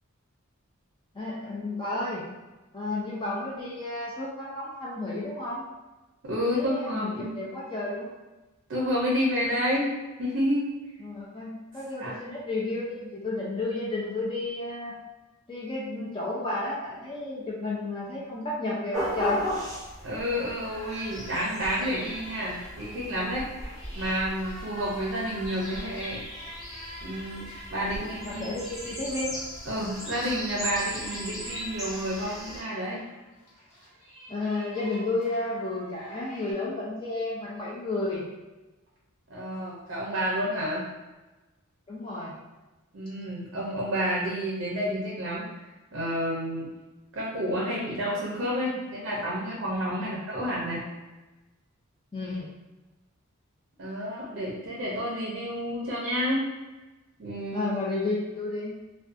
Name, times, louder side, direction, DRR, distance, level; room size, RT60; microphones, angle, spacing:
voice 1, 1.1-2.2 2.7-5.7 6.4-8.1 11.0-14.9 15.5-19.4 28.0-29.3 34.3-38.2 41.9-42.3 50.0-50.2 52.1-52.5 57.5-58.8, left 2 dB, 20° left, -6 dB, 0.3 m, -32 dB
voice 2, 6.2-7.4 8.7-9.9 10.2-10.7 12.0-12.1 20.0-23.5 24.0-26.2 27.0-28.4 29.7-33.0 39.3-40.8 42.9-45.5 45.9-46.7 47.1-50.8 53.8-56.4 57.2-57.7, equal, 55° right, -5 dB, 0.5 m, -30 dB
sound 1, 18.9-32.6, left 1 dB, ahead, 0.7 m, -37 dB
sound 2, 20.6-23.1 23.5-36.5, equal, 85° left, 0.9 m, -46 dB
2.5 x 2.2 x 2.4 m, 1.1 s
head